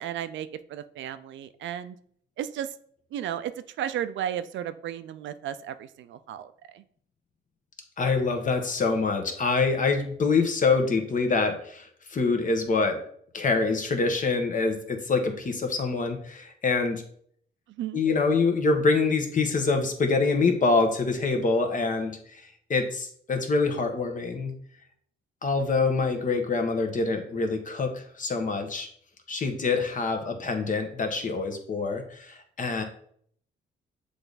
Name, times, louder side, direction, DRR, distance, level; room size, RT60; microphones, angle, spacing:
voice 1, 0.0-2.0 2.4-2.7 3.1-3.5 3.8-6.8 17.8-18.0, right 10 dB, 70° right, 12 dB, 0.5 m, -34 dB
voice 2, 8.0-13.0 13.3-17.0 17.9-22.4 22.7-24.5 25.4-28.9 29.3-32.8, left 4 dB, 40° left, 5 dB, 1.2 m, -25 dB
6.8 x 3.4 x 4.0 m, 0.62 s
cardioid pair, 90°, 20 cm